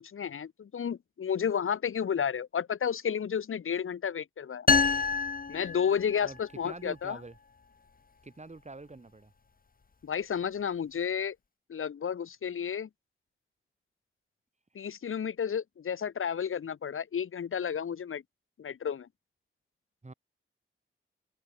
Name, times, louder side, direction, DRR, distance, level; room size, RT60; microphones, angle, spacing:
voice 1, 0.0-4.7 5.5-7.2 10.0-11.3 11.7-12.9 14.7-18.2 18.6-19.1, left 7 dB, 80° left, 0.9 m, -32 dB
sound 1, 4.7-6.4, left 4 dB, 45° left, 1.1 m, -27 dB
voice 2, 6.2-7.4 8.2-9.3 20.0-20.1, right 3 dB, 35° right, 3.8 m, -45 dB
open air
wide cardioid pair, 80°, 21 cm